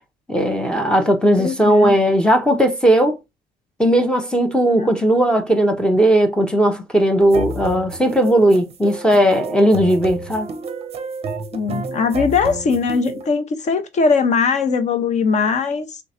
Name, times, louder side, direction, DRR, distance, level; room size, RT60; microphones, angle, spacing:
voice 1, 0.3-3.2 3.8-10.5, right 1 dB, 5° left, 0.6 m, -17 dB
voice 2, 1.4-2.0 4.8-4.9 11.5-16.0, left 5 dB, 45° left, 0.8 m, -20 dB
sound 1, 7.2-13.3, right 3 dB, 35° right, 0.6 m, -31 dB
3.2 x 3.0 x 2.7 m
cardioid pair, 110°, 17 cm